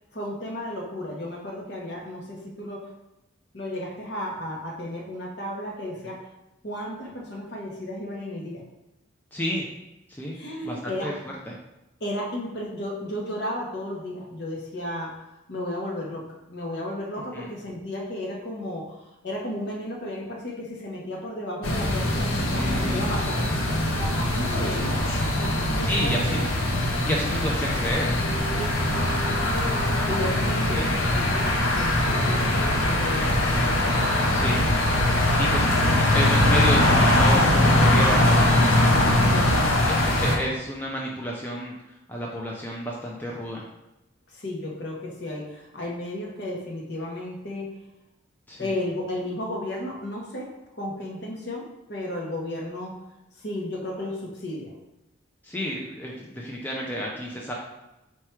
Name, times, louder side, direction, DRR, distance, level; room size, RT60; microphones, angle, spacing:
voice 1, 0.1-2.9 3.5-6.3 6.6-8.6 10.3-11.2 12.0-15.2 15.5-23.5 24.0-26.5 28.5-29.8 30.1-30.9 31.1-31.9 32.2-33.7 39.3-39.7 44.3-47.7 48.6-53.0 53.4-54.7, left 1 dB, 55° left, -1 dB, 0.8 m, -34 dB
voice 2, 9.3-9.7 10.1-10.4 10.6-11.1 11.5-11.6 17.3-17.5 22.3-23.1 24.6-24.7 25.6-26.5 27.1-28.2 30.7-31.0 34.3-34.6 35.4-38.4 39.0-39.3 39.9-41.7 42.1-43.6 48.5-48.7 55.4-57.5, equal, 10° left, -3 dB, 0.4 m, -31 dB
sound 1, 21.6-40.4, left 1 dB, 90° left, 0.7 m, -22 dB
4.5 x 2.3 x 4.4 m, 0.95 s
head